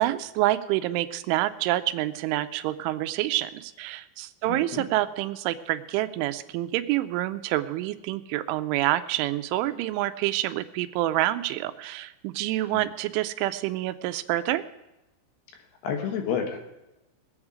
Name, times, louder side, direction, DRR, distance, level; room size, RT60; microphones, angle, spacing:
voice 1, 0.0-14.6, right 15 dB, 85° right, 11 dB, 3.0 m, -27 dB
voice 2, 4.5-4.8 15.8-16.6, left 7 dB, 70° left, 3 dB, 2.8 m, -29 dB
21.5 x 8.0 x 4.9 m, 0.97 s
omnidirectional pair, 5.5 m